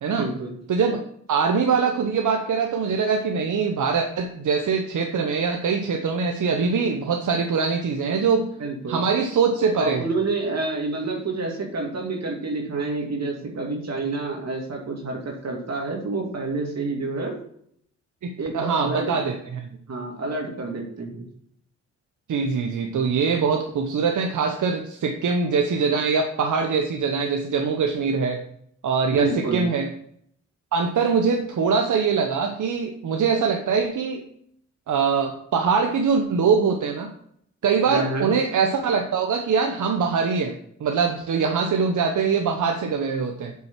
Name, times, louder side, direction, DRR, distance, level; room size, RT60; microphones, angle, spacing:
voice 1, 0.1-0.6 8.6-9.0 9.7-17.4 18.4-19.1 19.9-21.3 29.1-29.7 37.9-38.3, right 3 dB, 60° right, 0 dB, 2.2 m, -28 dB
voice 2, 0.7-8.5 8.9-10.1 18.2-19.7 22.3-28.4 28.8-29.9 30.7-34.2 34.9-37.1 37.6-43.5, right 5 dB, 80° right, 4 dB, 0.9 m, -23 dB
7.4 x 6.1 x 6.0 m, 0.67 s
cardioid pair, 60°, 30 cm